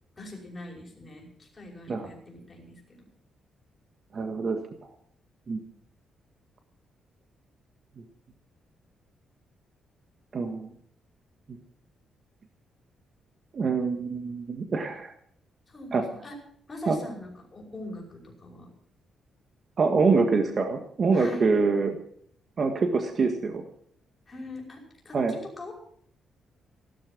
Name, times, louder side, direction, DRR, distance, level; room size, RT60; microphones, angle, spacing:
voice 1, 0.2-3.0 15.7-16.0 16.2-16.4 16.7-18.7 21.1-21.5 24.3-25.7, left 1 dB, 20° left, 0 dB, 5.5 m, -42 dB
voice 2, 4.1-4.6 5.5-5.6 10.3-10.7 13.5-15.1 15.9-16.0 16.9-17.0 19.8-21.9 22.6-23.6 25.1-25.4, right 4 dB, 40° right, 5 dB, 1.7 m, -25 dB
16.0 x 12.5 x 6.1 m, 0.62 s
cardioid pair, 150°, 0 cm